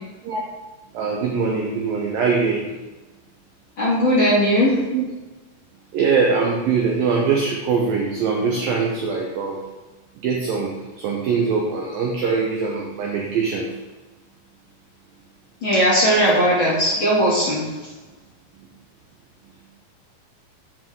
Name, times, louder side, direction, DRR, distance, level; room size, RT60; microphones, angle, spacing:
voice 1, 0.9-2.7 4.9-5.0 5.9-9.6 10.2-13.7, right 5 dB, 90° right, 0 dB, 2.0 m, -22 dB
voice 2, 3.8-4.7 15.6-17.6, equal, 35° left, -9 dB, 2.4 m, -18 dB
7.8 x 7.5 x 3.7 m, 1.2 s
omnidirectional pair, 5.3 m